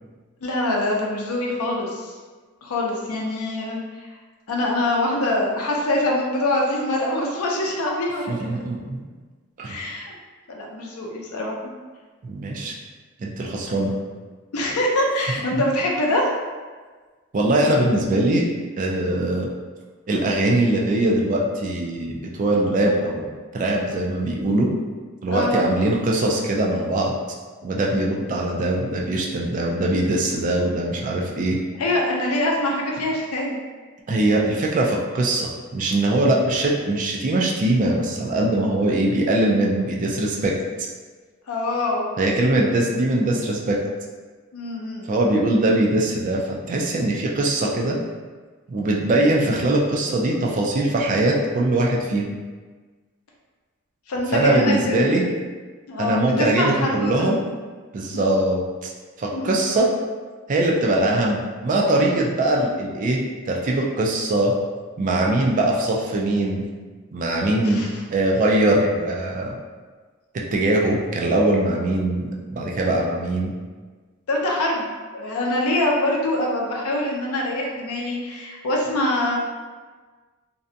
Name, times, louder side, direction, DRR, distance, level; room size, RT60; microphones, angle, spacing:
voice 1, 0.4-2.2 2.6-4.1 4.5-8.6 9.6-10.0 10.5-11.6 14.5-16.3 25.3-25.6 31.8-33.6 41.5-42.1 44.5-45.2 54.1-55.4 55.9-57.1 59.3-59.4 67.6-67.9 74.3-74.9 75.1-79.4, left 1 dB, 85° left, -1 dB, 0.5 m, -24 dB
voice 2, 8.3-9.0 9.6-9.8 12.2-12.7 13.2-13.9 15.5-15.6 17.3-18.5 18.8-19.5 20.1-23.3 23.5-24.7 25.2-27.1 27.6-31.6 34.1-40.5 42.2-43.8 45.1-48.0 48.7-52.3 54.3-55.3 56.0-57.4 57.9-58.9 59.2-59.9 60.5-63.2 63.5-64.5 65.0-66.6 67.1-67.8 68.1-69.5 70.5-73.5, right 1 dB, 35° right, -1 dB, 0.3 m, -21 dB
2.5 x 2.2 x 2.6 m, 1.4 s
head